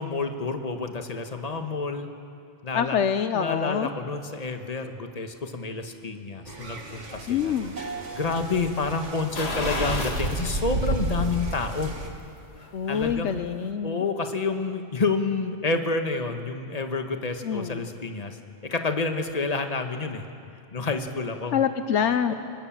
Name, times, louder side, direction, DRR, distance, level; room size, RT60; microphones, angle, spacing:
voice 1, 0.0-2.1 2.6-3.0 3.3-7.5 8.1-11.9 12.9-13.4 13.8-18.4 18.6-20.2 20.7-21.6 22.3-22.4, left 3 dB, 30° left, 6 dB, 1.4 m, -29 dB
voice 2, 2.7-3.9 7.3-7.7 12.7-14.1 17.4-17.9 21.5-22.3, left 8 dB, 70° left, 10 dB, 1.0 m, -26 dB
sound 1, 6.5-12.1, right 2 dB, 75° right, 2.3 m, -32 dB
sound 2, 9.3-10.4 10.8-10.9 12.4-13.2 13.6-13.7, left 2 dB, 55° left, 2.3 m, -31 dB
27.0 x 19.0 x 7.4 m, 2.5 s
omnidirectional pair, 1.3 m